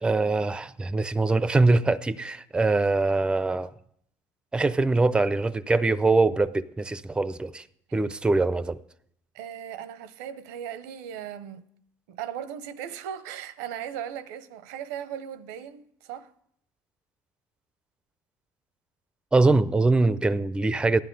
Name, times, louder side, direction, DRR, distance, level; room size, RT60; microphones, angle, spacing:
voice 1, 0.0-3.7 4.5-7.6 7.9-8.8 19.3-21.0, right 3 dB, 10° right, 0.4 m, -23 dB
voice 2, 9.3-11.7 12.1-16.3, right 9 dB, 85° right, 0.7 m, -37 dB
15.0 x 11.0 x 3.9 m
supercardioid pair, 90°, 8 cm